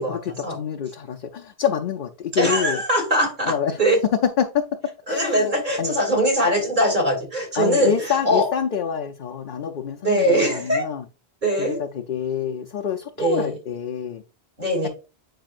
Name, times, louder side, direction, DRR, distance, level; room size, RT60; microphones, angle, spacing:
voice 1, 0.0-2.8 3.4-3.8 4.4-5.5 5.8-5.9 7.5-11.0 11.6-14.2, left 7 dB, 55° left, 0.8 m, -27 dB
voice 2, 2.4-4.0 5.1-8.5 10.0-10.8 11.4-11.8 13.2-13.6 14.6-14.9, equal, 45° right, 2.8 m, -21 dB
8.9 x 5.6 x 2.5 m
omnidirectional pair, 1.1 m